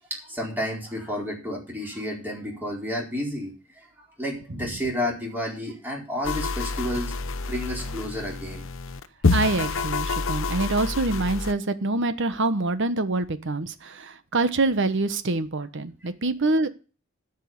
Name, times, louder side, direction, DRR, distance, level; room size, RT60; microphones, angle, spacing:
voice 1, 0.1-7.1 7.4-8.6, left 1 dB, 10° right, -2 dB, 4.4 m, -31 dB
sound 1, 6.2-11.5, left 4 dB, 65° left, 0.8 m, -27 dB
voice 2, 9.3-16.7, right 2 dB, 60° right, 12 dB, 1.1 m, -25 dB
12.0 x 5.5 x 8.0 m, 0.34 s
head